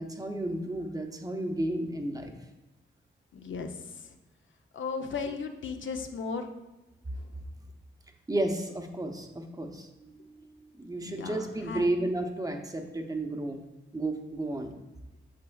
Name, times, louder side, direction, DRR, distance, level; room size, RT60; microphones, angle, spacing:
voice 1, 0.0-2.3 8.3-13.6 13.9-14.7, right 1 dB, 15° right, 4 dB, 0.7 m, -32 dB
voice 2, 3.3-4.2 4.7-6.5 7.1-7.3 11.0-11.9, left 5 dB, 65° left, 6 dB, 0.7 m, -36 dB
8.6 x 7.1 x 2.3 m, 1.1 s
wide cardioid pair, 130°, 21 cm